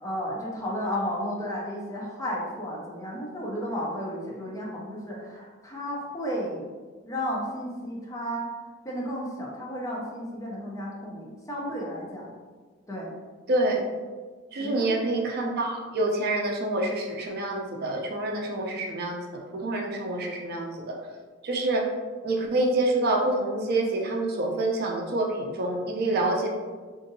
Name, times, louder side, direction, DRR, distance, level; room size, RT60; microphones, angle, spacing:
voice 1, 0.0-6.7 7.1-8.5 8.8-12.3 12.9-13.1 14.6-14.9, equal, 15° left, -3 dB, 0.6 m, -33 dB
voice 2, 13.5-13.8 14.5-21.0 21.4-21.9 22.2-26.5, right 2 dB, 55° right, 1 dB, 0.5 m, -27 dB
3.8 x 2.6 x 2.6 m, 1.4 s
head